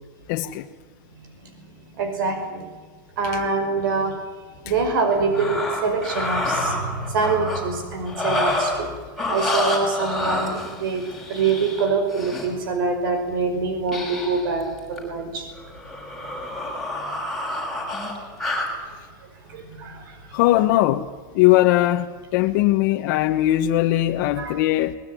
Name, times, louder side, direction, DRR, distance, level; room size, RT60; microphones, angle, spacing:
voice 1, 0.3-0.7 3.2-3.4 20.3-21.1 21.3-24.9, left 15 dB, 50° left, 1.2 m, -20 dB
voice 2, 2.0-2.6 3.2-4.1 4.7-6.8 7.1-8.9 9.3-11.0 11.3-15.5 19.5-20.0 24.4-24.5, right 4 dB, 80° right, 5.5 m, -24 dB
sound 1, 5.1-7.6 8.1-8.9 9.2-12.5 13.9-14.5 14.8-15.0 15.6-18.7, left 1 dB, ahead, 6.1 m, -28 dB
22.5 x 20.5 x 9.9 m
supercardioid pair, 160°, 11 cm